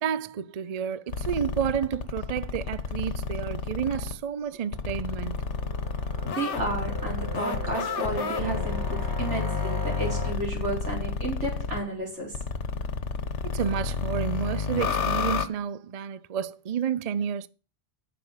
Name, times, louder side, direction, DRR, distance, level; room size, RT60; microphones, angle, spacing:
voice 1, 0.0-5.4 13.4-17.5, right 8 dB, 45° right, 0.5 m, -30 dB
sound 1, 1.1-4.1 4.7-11.8 12.3-15.5, left 5 dB, 80° left, 1.4 m, -30 dB
sound 2, 4.4-10.3, right 1 dB, 15° right, 1.8 m, -39 dB
voice 2, 6.2-12.4, right 2 dB, 80° right, 4.8 m, -32 dB
9.6 x 6.9 x 6.4 m
omnidirectional pair, 1.2 m